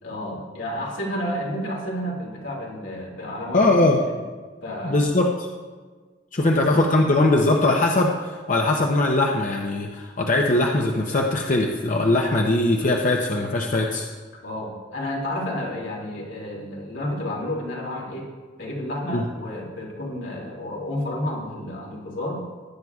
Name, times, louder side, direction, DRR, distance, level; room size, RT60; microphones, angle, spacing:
voice 1, 0.0-4.2 4.6-5.0 6.4-6.7 14.4-18.3 18.6-22.4, left 1 dB, 80° left, -2 dB, 2.5 m, -31 dB
voice 2, 3.5-4.0 4.8-5.3 6.3-14.1 19.1-19.2, left 2 dB, 45° left, 1 dB, 0.7 m, -20 dB
16.5 x 9.4 x 2.4 m, 1.4 s
head